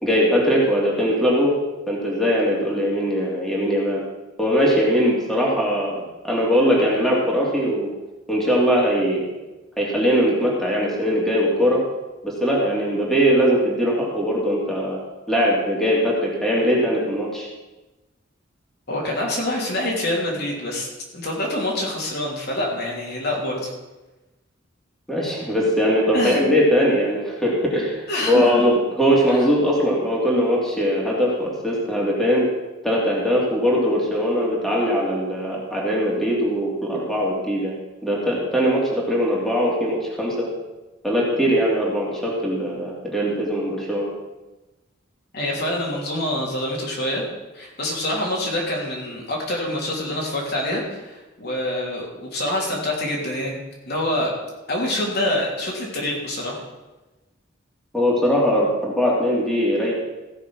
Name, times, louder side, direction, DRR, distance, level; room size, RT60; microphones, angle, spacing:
voice 1, 0.0-1.5 1.9-4.0 4.4-7.9 8.3-9.2 9.8-11.8 12.2-15.0 15.3-17.5 25.1-32.5 32.8-37.7 38.0-40.5 41.0-44.1 57.9-59.9, equal, ahead, -5 dB, 2.8 m, -21 dB
voice 2, 18.9-20.9 21.1-23.7 26.1-26.4 28.1-28.6 45.3-47.2 47.5-53.6 53.9-54.3 54.7-56.6, left 1 dB, 55° left, -2 dB, 3.1 m, -26 dB
15.5 x 6.3 x 6.2 m, 1.1 s
head